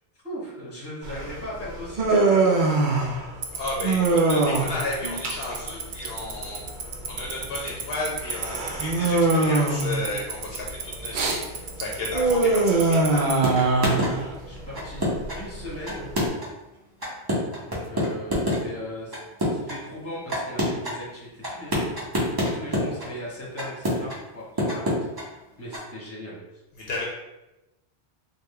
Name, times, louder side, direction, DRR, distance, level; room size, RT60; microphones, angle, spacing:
voice 1, 0.2-3.2 14.5-15.1 15.3-16.1 17.6-19.1 19.5-21.9 22.4-26.4, equal, 15° left, -6 dB, 1.1 m, -38 dB
Human voice, 1.0-16.3, right 3 dB, 55° right, 0.6 m, -24 dB
Tick-tock, 3.4-13.3, right 9 dB, 90° right, 0.9 m, -30 dB
voice 2, 3.5-6.6 7.1-13.3 26.9-27.0, left 2 dB, 70° left, -2 dB, 0.8 m, -33 dB
sound 1, 13.4-14.1 14.7-15.4 15.8-16.6 17.0-18.6 19.1-19.8 20.3-20.9 21.4-23.1 23.6-24.2 24.6-25.2 25.7-25.8, equal, 25° right, 0.8 m, -25 dB
3.6 x 2.2 x 3.2 m, 0.96 s
omnidirectional pair, 1.1 m